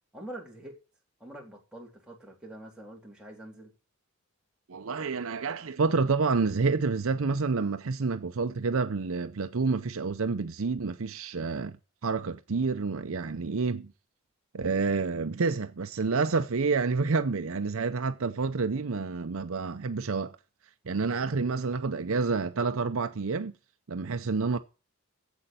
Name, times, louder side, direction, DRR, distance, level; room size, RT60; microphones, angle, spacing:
voice 1, 0.1-0.7 1.2-3.7, right 1 dB, 5° right, 3.3 m, -45 dB
voice 2, 4.7-11.8 12.0-13.9 14.5-20.4 20.9-23.5 23.9-24.6, right 4 dB, 75° right, 0.6 m, -28 dB
8.3 x 8.0 x 9.0 m
head